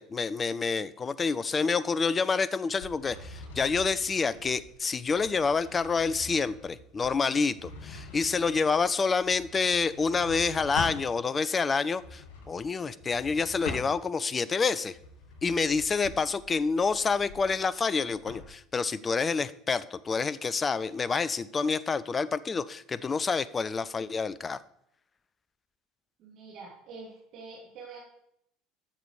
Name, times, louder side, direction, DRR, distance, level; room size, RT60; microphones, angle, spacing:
voice 1, 0.0-15.0 15.4-24.6, left 5 dB, 25° left, 17 dB, 0.6 m, -28 dB
sound 1, 2.7-11.1 11.9-14.3 14.8-18.5, left 3 dB, 70° left, 3.7 m, -44 dB
voice 2, 26.2-28.0, right 4 dB, 50° right, -5 dB, 2.7 m, -46 dB
12.5 x 6.9 x 4.8 m, 0.73 s
figure-of-eight pair, 70°, 0 cm